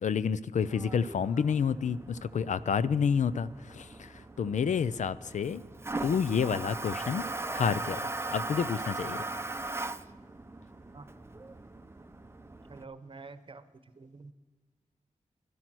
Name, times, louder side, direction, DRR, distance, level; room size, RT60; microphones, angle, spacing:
voice 1, 0.0-4.1 4.4-5.6 6.0-7.3 7.5-8.0 8.3-9.2, left 6 dB, 75° left, 16 dB, 0.5 m, -29 dB
Toilet flush, 0.6-12.8, right 2 dB, 20° right, 0.6 m, -39 dB
voice 2, 12.7-13.6 14.0-14.3, right 4 dB, 45° right, 13 dB, 0.9 m, -47 dB
12.0 x 11.5 x 6.1 m, 1.3 s
cardioid pair, 65°, 13 cm